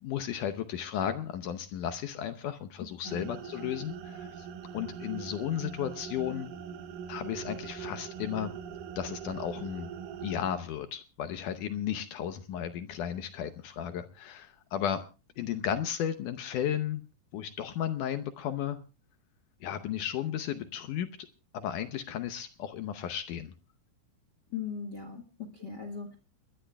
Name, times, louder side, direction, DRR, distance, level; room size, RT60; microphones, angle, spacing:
voice 1, 0.0-4.5 4.7-6.5 7.1-8.5 9.0-9.9 10.2-15.1 15.4-17.0 17.3-18.8 19.6-21.3 21.5-23.5, left 10 dB, 75° left, 9 dB, 1.9 m, -34 dB
voice 2, 2.8-3.3 24.5-26.2, left 6 dB, 50° left, 6 dB, 1.3 m, -39 dB
sound 1, 3.0-10.6, right 7 dB, 65° right, 2.5 m, -42 dB
29.5 x 12.5 x 2.3 m, 0.32 s
omnidirectional pair, 4.6 m